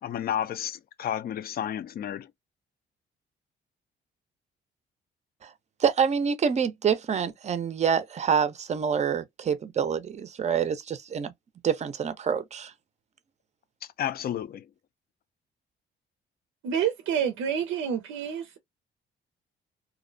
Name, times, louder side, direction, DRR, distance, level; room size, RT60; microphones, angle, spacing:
voice 1, 0.0-2.3 14.0-14.7, left 10 dB, 50° left, 0.4 m, -31 dB
voice 2, 5.8-11.3 11.6-12.7, right 7 dB, 35° right, 0.5 m, -26 dB
voice 3, 16.6-18.6, right 8 dB, 90° right, 0.5 m, -28 dB
2.5 x 2.0 x 2.5 m
cardioid pair, 90°, 20 cm